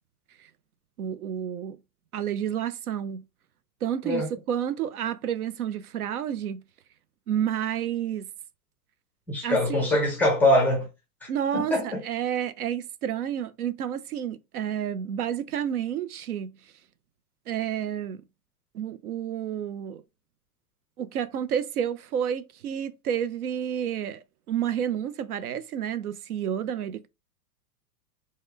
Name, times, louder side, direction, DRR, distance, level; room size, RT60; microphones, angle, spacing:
voice 1, 1.0-1.8 2.1-3.2 3.8-6.6 7.3-8.3 9.4-9.9 11.3-16.5 17.5-18.2 18.7-20.0 21.0-27.1, right 9 dB, 75° right, 0.5 m, -30 dB
voice 2, 9.3-10.9 11.2-12.0, left 1 dB, 5° left, 0.4 m, -23 dB
3.1 x 2.1 x 3.4 m
figure-of-eight pair, 100°, 45 cm